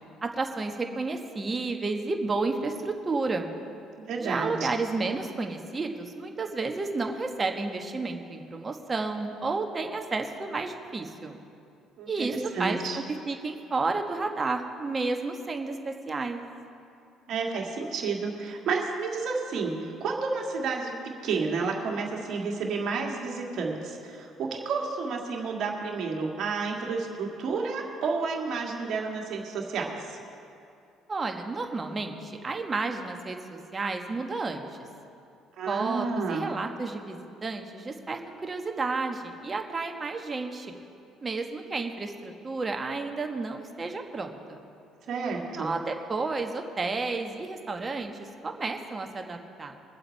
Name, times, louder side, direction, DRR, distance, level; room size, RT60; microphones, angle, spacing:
voice 1, 0.2-3.5 4.2-11.4 12.1-16.4 31.1-34.7 35.7-40.7 41.2-44.6 45.5-48.1 48.4-49.8, right 3 dB, 30° right, 4 dB, 1.4 m, -31 dB
voice 2, 4.0-4.7 12.0-13.0 17.3-30.2 35.6-36.4 45.1-45.7, right 4 dB, 55° right, 0 dB, 2.0 m, -31 dB
22.0 x 7.8 x 4.7 m, 2.6 s
figure-of-eight pair, 50°, 0 cm